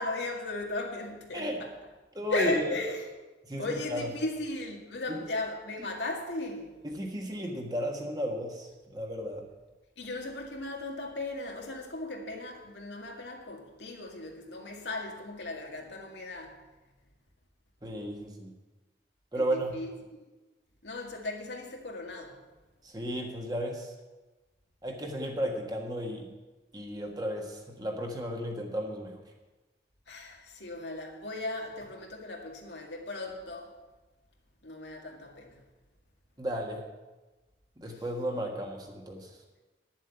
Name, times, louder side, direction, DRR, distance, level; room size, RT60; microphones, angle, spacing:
voice 1, 0.0-1.7 2.3-3.1 3.6-6.7 10.0-16.5 19.3-19.9 20.8-22.4 30.1-33.7 34.6-35.6, left 2 dB, 85° left, 1 dB, 2.0 m, -36 dB
voice 2, 2.1-2.7 3.5-4.1 5.1-5.2 6.8-9.4 17.8-18.5 19.3-19.7 22.8-23.9 24.8-26.3 26.7-29.2 36.4-36.8 37.8-39.3, equal, 20° right, 1 dB, 1.5 m, -34 dB
10.5 x 7.4 x 8.0 m, 1.2 s
head